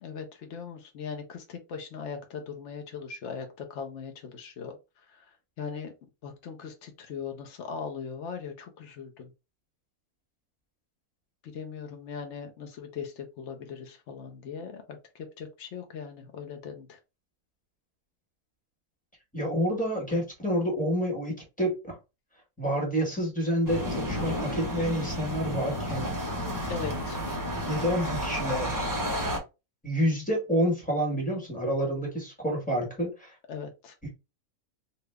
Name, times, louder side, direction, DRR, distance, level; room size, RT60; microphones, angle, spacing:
voice 1, 0.0-4.8 5.1-5.3 5.6-5.9 6.2-9.3 11.4-17.0 26.7-27.2 33.5-33.9, left 6 dB, 55° left, 1.0 m, -39 dB
voice 2, 19.3-22.0 22.6-26.1 27.7-28.9 29.8-33.3 34.0-34.1, equal, 5° left, 1.3 m, -28 dB
sound 1, 23.7-29.4, equal, 15° right, 0.7 m, -31 dB
2.9 x 2.6 x 3.3 m
omnidirectional pair, 1.5 m